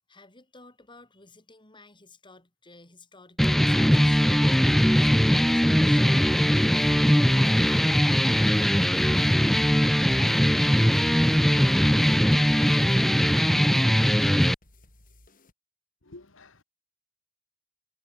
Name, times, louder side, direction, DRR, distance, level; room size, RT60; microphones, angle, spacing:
voice 1, 0.1-4.3 4.7-6.0, left 2 dB, 25° left, 5.2 m, -53 dB
sound 1, 3.4-14.5, equal, ahead, 0.3 m, -20 dB
sound 2, 6.6-15.5, left 2 dB, 40° left, 4.9 m, -59 dB
voice 2, 16.0-16.6, left 2 dB, 65° left, 2.1 m, -49 dB
head